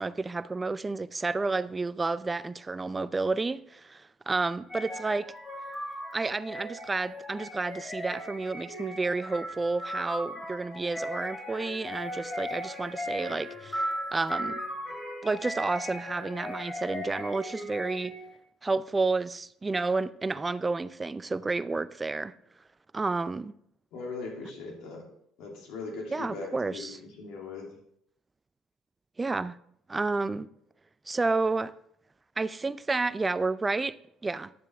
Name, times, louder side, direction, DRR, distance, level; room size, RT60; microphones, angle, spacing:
voice 1, 0.0-5.3 6.1-14.6 15.2-18.1 18.6-22.3 22.9-23.5 26.1-27.0 29.2-29.6 29.9-30.5 31.1-31.7 32.4-34.0 34.2-34.5, right 3 dB, 20° right, 0.4 m, -30 dB
sound 1, 4.7-18.3, equal, 20° left, 2.6 m, -37 dB
voice 2, 23.9-25.0 25.4-27.7, left 3 dB, 70° left, 2.7 m, -39 dB
10.5 x 7.2 x 3.5 m
supercardioid pair, 90°, 0 cm